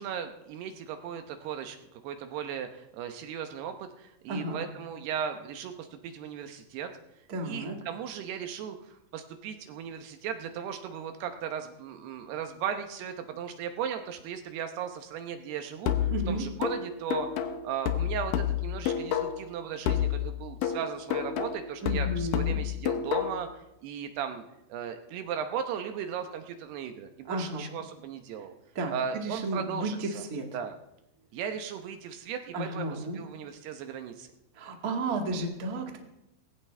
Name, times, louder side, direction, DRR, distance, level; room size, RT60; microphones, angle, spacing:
voice 1, 0.0-6.9 7.4-24.4 24.7-28.5 28.9-30.3 30.5-30.7 31.3-34.3 35.1-35.2, right 8 dB, 75° right, 6 dB, 2.7 m, -37 dB
voice 2, 4.3-4.7 7.3-7.8 16.1-16.4 21.8-22.6 27.2-27.7 28.7-30.5 32.5-33.2 34.5-36.0, right 2 dB, 55° right, 2 dB, 0.9 m, -33 dB
sound 1, 15.9-19.5 19.9-23.5, left 10 dB, 85° left, 1.8 m, -30 dB
20.0 x 17.5 x 3.4 m, 0.88 s
omnidirectional pair, 5.2 m